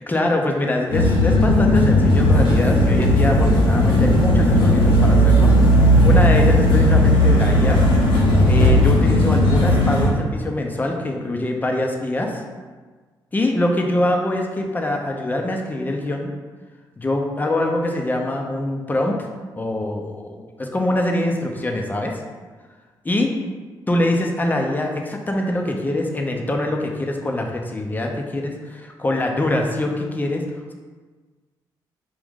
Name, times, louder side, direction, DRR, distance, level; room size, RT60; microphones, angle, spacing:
voice 1, 0.1-5.5 5.8-7.8 8.5-12.4 13.3-16.3 17.0-19.3 19.5-22.2 23.0-23.3 23.9-30.4, left 1 dB, 20° left, 1 dB, 0.7 m, -23 dB
sound 1, 0.9-10.1, equal, 75° left, 1.1 m, -15 dB
4.8 x 2.6 x 3.6 m, 1.4 s
cardioid pair, 80°, 9 cm